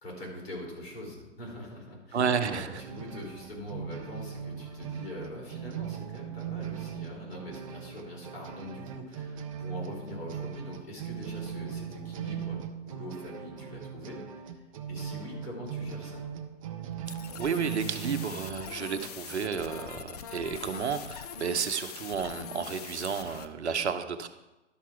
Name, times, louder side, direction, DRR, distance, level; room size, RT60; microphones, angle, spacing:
voice 1, 0.0-14.5 14.9-16.3, left 1 dB, 55° left, -1 dB, 3.9 m, -43 dB
voice 2, 2.1-2.8 17.4-24.3, right 6 dB, 65° right, 9 dB, 0.9 m, -31 dB
sound 1, 2.2-18.3, right 8 dB, 30° right, 0.6 m, -39 dB
sound 2, 17.1-23.5, left 7 dB, 35° left, 0.5 m, -42 dB
12.0 x 5.9 x 4.6 m, 1.0 s
figure-of-eight pair, 125°, 37 cm